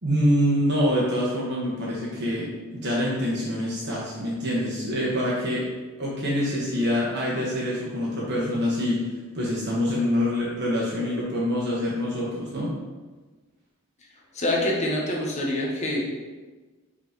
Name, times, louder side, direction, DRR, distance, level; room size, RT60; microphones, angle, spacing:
voice 1, 0.0-5.7 6.0-9.0 9.3-12.7, equal, 50° right, -5 dB, 1.2 m, -25 dB
voice 2, 14.3-16.1, left 1 dB, 30° left, -3 dB, 1.2 m, -25 dB
5.4 x 4.1 x 5.1 m, 1.3 s
head